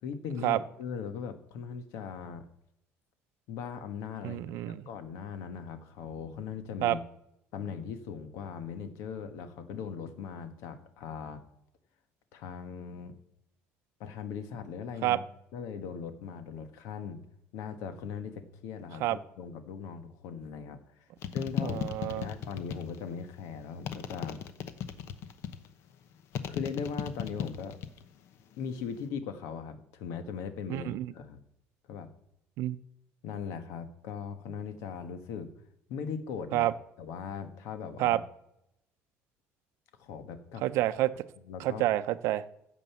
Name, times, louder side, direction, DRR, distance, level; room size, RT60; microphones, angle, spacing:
voice 1, 0.0-2.4 3.5-4.4 4.8-7.0 7.5-11.4 12.3-13.2 14.0-15.2 15.5-17.2 17.5-20.8 21.3-24.4 26.5-27.8 28.6-31.4 31.9-32.1 33.2-35.5 35.9-36.7 37.0-38.2 40.0-40.6 41.5-41.9, left 6 dB, 75° left, 9 dB, 1.5 m, -39 dB
voice 2, 4.2-4.8 6.8-7.0 15.0-15.2 19.0-19.2 21.6-22.3 30.7-31.1 32.6-32.8 36.5-36.7 38.0-38.2 40.6-41.1 41.6-42.4, right 15 dB, 65° right, 13 dB, 0.7 m, -28 dB
sound 1, 21.2-23.1 23.9-25.7 26.3-28.0 28.3-28.9, left 9 dB, 55° left, 1.0 m, -36 dB
15.5 x 5.4 x 7.0 m, 0.81 s
cardioid pair, 160°, 5 cm